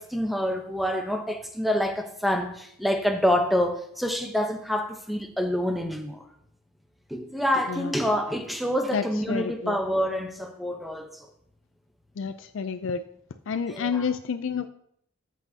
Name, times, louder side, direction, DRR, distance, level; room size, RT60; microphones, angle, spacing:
voice 1, 0.0-6.2 7.1-11.3 13.7-14.1, equal, ahead, 5 dB, 0.8 m, -27 dB
voice 2, 8.9-9.8 12.2-13.0 13.5-14.7, left 6 dB, 60° left, 10 dB, 0.4 m, -29 dB
13.5 x 8.3 x 2.8 m, 0.69 s
head